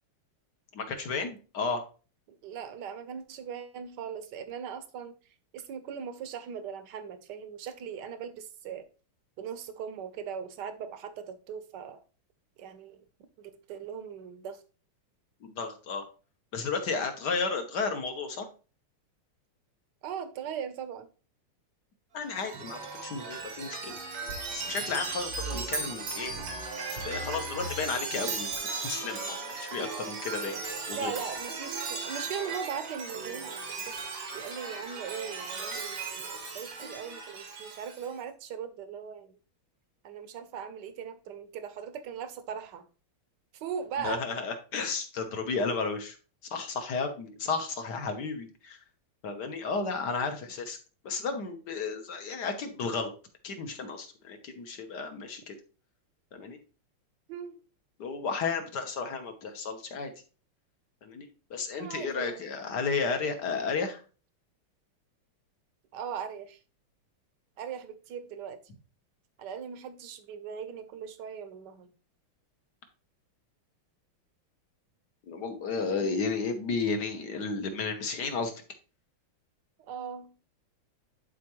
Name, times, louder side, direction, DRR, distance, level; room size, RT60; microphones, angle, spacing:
voice 1, 0.7-1.8 15.4-16.0 16.5-18.5 22.1-24.0 24.5-26.3 26.9-28.5 28.8-30.6 30.9-31.1 44.0-46.1 46.5-48.8 49.2-50.8 51.0-53.1 53.4-55.5 56.3-56.6 58.0-60.1 61.0-64.0 75.3-78.5, left 4 dB, 55° left, 1.5 m, -33 dB
voice 2, 2.3-5.1 5.5-8.9 9.4-12.0 12.6-13.0 13.4-14.6 20.0-21.1 30.9-33.6 33.8-34.0 34.3-39.4 40.0-42.9 43.5-44.2 45.7-45.8 57.3-57.6 61.8-62.5 65.9-66.6 67.6-68.6 69.4-71.9 79.8-80.3, right 7 dB, 60° right, 1.3 m, -39 dB
Chime, 22.2-38.1, right 4 dB, 90° right, 2.5 m, -37 dB
11.0 x 4.4 x 3.0 m
omnidirectional pair, 2.4 m